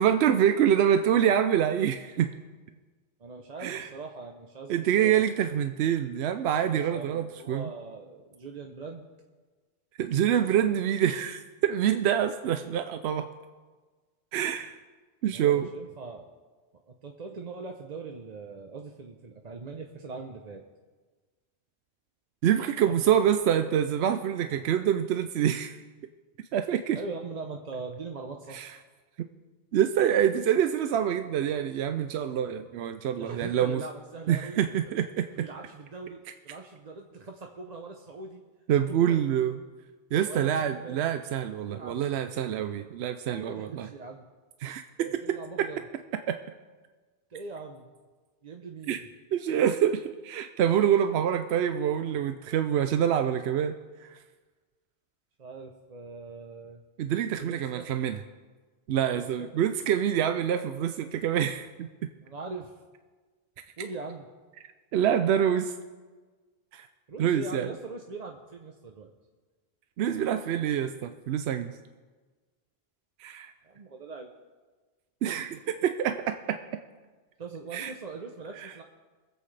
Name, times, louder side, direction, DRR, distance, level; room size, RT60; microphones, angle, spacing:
voice 1, 0.0-2.3 3.6-3.9 4.7-7.7 10.0-13.3 14.3-14.8 15.2-15.7 22.4-25.8 26.5-27.0 28.5-28.7 29.2-29.3 29.7-33.8 34.3-35.5 38.7-39.6 40.1-43.9 44.6-45.4 46.3-46.4 48.9-49.0 49.3-53.7 54.0-54.2 57.0-58.2 58.9-61.9 64.9-65.7 66.7-66.9 67.2-67.7 70.0-71.8 73.2-73.5 75.2-76.6 77.7-77.9 78.6-78.7, right 9 dB, 85° right, 8 dB, 0.8 m, -26 dB
voice 2, 3.2-5.2 6.6-9.1 15.3-16.2 16.9-20.6 22.8-22.9 26.9-28.7 33.2-34.6 35.4-38.4 38.9-39.2 40.3-41.1 41.7-42.3 43.2-44.3 45.2-45.8 47.3-47.9 48.4-49.1 55.4-56.8 57.4-57.9 59.1-59.5 62.2-62.8 63.8-64.2 67.1-69.1 73.6-74.3 77.4-78.8, right 4 dB, 45° right, 2 dB, 0.8 m, -41 dB
24.0 x 8.0 x 3.3 m, 1.4 s
omnidirectional pair, 1.1 m